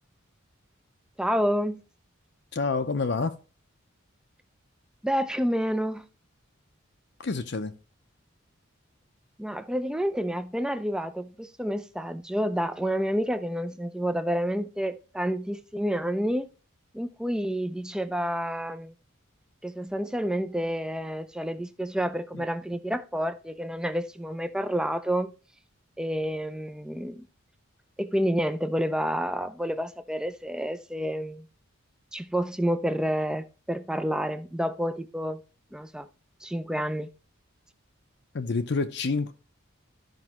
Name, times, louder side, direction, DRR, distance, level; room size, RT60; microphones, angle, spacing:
voice 1, 1.2-1.8 5.0-6.1 9.4-16.5 16.9-18.9 19.6-25.3 26.0-27.3 28.0-31.5 32.1-35.4 35.7-36.1 36.4-37.1, equal, 5° right, 0.4 m, -29 dB
voice 2, 2.5-3.4 7.2-7.8 38.3-39.3, left 4 dB, 55° left, 0.6 m, -28 dB
13.0 x 5.3 x 2.9 m
head